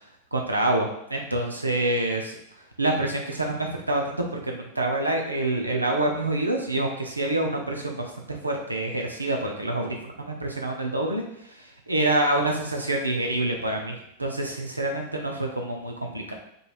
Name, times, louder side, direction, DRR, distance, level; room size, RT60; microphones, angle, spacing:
voice 1, 0.3-2.4 2.8-16.3, right 1 dB, 85° right, 2 dB, 0.5 m, -27 dB
5.1 x 3.1 x 2.4 m, 0.73 s
figure-of-eight pair, 90°, 0 cm